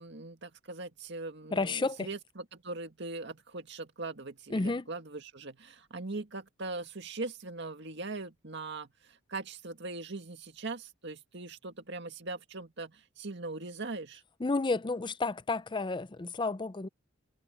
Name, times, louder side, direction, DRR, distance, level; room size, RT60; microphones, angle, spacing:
voice 1, 0.0-14.2, right 3 dB, 60° right, 2.0 m, -41 dB
voice 2, 1.5-2.1 4.5-4.9 14.4-16.9, left 3 dB, 25° left, 0.5 m, -31 dB
head